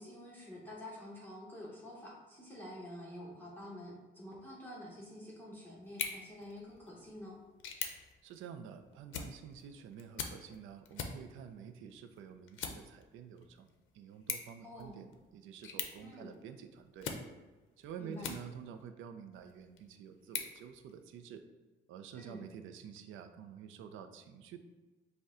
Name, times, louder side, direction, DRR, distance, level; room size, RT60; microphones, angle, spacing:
voice 1, 0.0-7.4 14.6-15.0 16.0-16.3 18.0-18.3 22.1-22.4, left 1 dB, 10° left, -6 dB, 1.0 m, -48 dB
sound 1, 5.8-18.8 19.3-21.4, left 7 dB, 75° left, 0.5 m, -46 dB
voice 2, 8.2-13.7 13.9-17.1 17.8-21.4 21.9-24.6, right 7 dB, 85° right, 8 dB, 0.4 m, -49 dB
5.3 x 2.2 x 3.7 m, 1.2 s
cardioid pair, 90°, 20 cm